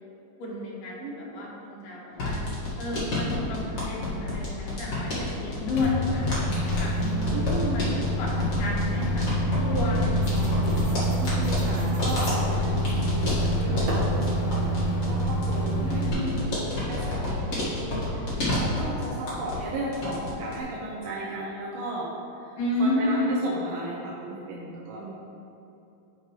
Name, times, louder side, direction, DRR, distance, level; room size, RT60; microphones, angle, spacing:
voice 1, 0.4-2.4 2.8-7.8 8.2-8.3 8.6-9.1 9.6-10.5 15.8-16.4 22.6-23.3, left 2 dB, 70° left, -5 dB, 3.4 m, -31 dB
voice 2, 1.0-1.5 7.3-8.1 10.3-25.1, right 1 dB, 75° right, -5 dB, 2.1 m, -36 dB
sound 1, 2.1-19.7 19.9-20.6, left 2 dB, 45° left, 2.2 m, -30 dB
Microwave oven, 5.8-16.1, equal, 90° left, 3.2 m, -27 dB
sound 2, 10.2-16.4, right 1 dB, 60° right, 1.7 m, -41 dB
11.5 x 5.2 x 3.2 m, 2.8 s
omnidirectional pair, 4.8 m